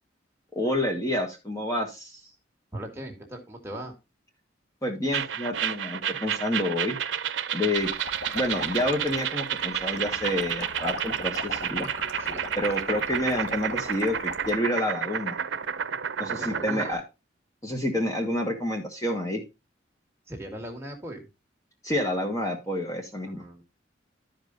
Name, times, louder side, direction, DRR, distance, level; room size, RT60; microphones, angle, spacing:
voice 1, 0.5-2.2 4.8-7.0 7.5-7.9 8.3-11.9 12.5-15.3 16.2-17.0 17.6-19.4 21.8-23.4, left 1 dB, 15° left, 2 dB, 1.4 m, -28 dB
voice 2, 2.7-3.9 12.2-12.4 16.3-17.0 20.3-21.2 23.3-23.6, right 1 dB, 15° right, 1 dB, 1.9 m, -38 dB
sound 1, 5.1-16.9, right 8 dB, 80° right, 0.6 m, -31 dB
sound 2, 7.8-14.5, left 2 dB, 65° left, 1.3 m, -39 dB
12.5 x 5.1 x 4.0 m, 0.26 s
head